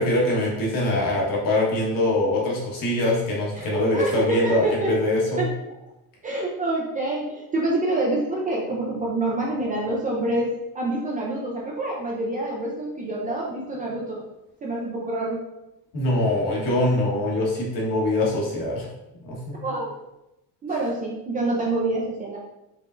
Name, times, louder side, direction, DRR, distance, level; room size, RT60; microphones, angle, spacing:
voice 1, 0.0-5.4 15.9-18.9 19.2-19.6, left 1 dB, 55° left, -3 dB, 1.4 m, -23 dB
voice 2, 3.6-5.0 5.4-5.8 6.2-14.3 14.6-15.4 19.6-19.9 20.6-22.4, right 2 dB, 20° right, -3 dB, 0.3 m, -27 dB
4.9 x 3.2 x 2.5 m, 0.93 s
cardioid pair, 170°, 40 cm